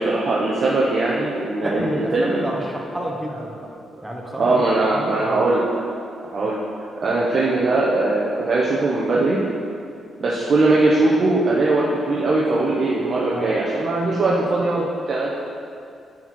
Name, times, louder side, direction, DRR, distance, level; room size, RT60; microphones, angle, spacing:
voice 1, 0.0-2.4 4.3-5.6 6.2-6.6 7.0-9.4 10.2-15.4, right 2 dB, 45° right, -5 dB, 0.9 m, -20 dB
voice 2, 1.6-3.5 4.0-4.7 4.9-5.5 13.3-13.6, right 1 dB, 10° right, -1 dB, 1.2 m, -29 dB
9.8 x 4.3 x 4.7 m, 2.5 s
cardioid pair, 120°, 0 cm